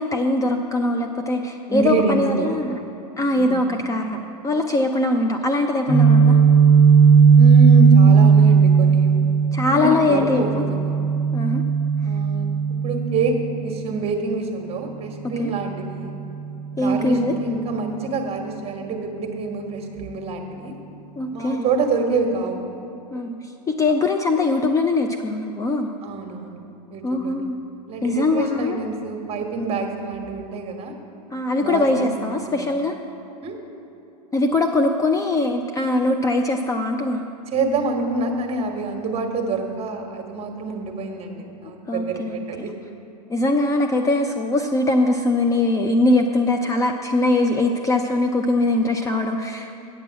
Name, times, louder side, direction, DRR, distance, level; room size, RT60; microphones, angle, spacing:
voice 1, 0.0-2.8 3.2-6.4 9.5-10.6 11.3-11.6 15.4-15.5 16.8-17.3 21.2-21.7 23.1-23.4 23.8-25.9 27.0-27.6 28.0-28.8 31.3-33.0 34.3-37.2 41.9-42.5 43.3-49.7, left 2 dB, 15° left, 4 dB, 0.5 m, -21 dB
voice 2, 1.7-2.9 3.3-3.6 7.3-9.2 9.7-10.9 12.0-12.5 12.8-13.3 13.6-16.1 16.7-20.7 21.3-22.6 26.0-26.6 26.9-27.5 27.9-31.0 31.6-32.8 33.4-33.6 37.5-42.7, right 3 dB, 30° right, 3 dB, 1.4 m, -26 dB
Guitar, 5.9-13.7, right 6 dB, 50° left, 1.6 m, -15 dB
8.8 x 6.0 x 7.5 m, 2.9 s
hypercardioid pair, 105°, 21 cm